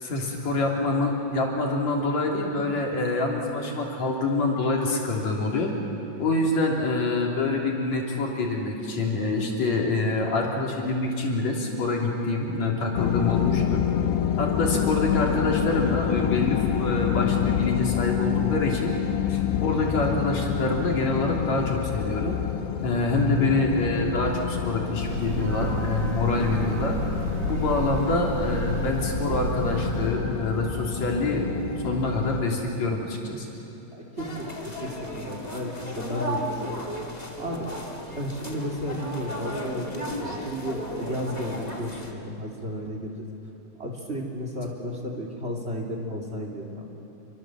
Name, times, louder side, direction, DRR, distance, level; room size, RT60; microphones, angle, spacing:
voice 1, 0.0-5.7 6.2-13.8 14.4-18.9 19.3-22.4 22.8-26.9 27.5-31.5 31.8-33.5, left 2 dB, 45° left, -1 dB, 4.2 m, -26 dB
sound 1, 12.9-32.4, left 10 dB, 85° left, 3.2 m, -28 dB
Breathing / Train, 24.8-30.3, right 2 dB, 70° right, 4.8 m, -31 dB
voice 2, 33.9-36.8 37.4-37.7 38.1-43.2 43.8-46.9, equal, 20° right, 1 dB, 2.4 m, -33 dB
sound 2, 34.2-42.1, equal, 15° left, 1.3 m, -35 dB
28.5 x 24.0 x 7.7 m, 2.9 s
omnidirectional pair, 4.6 m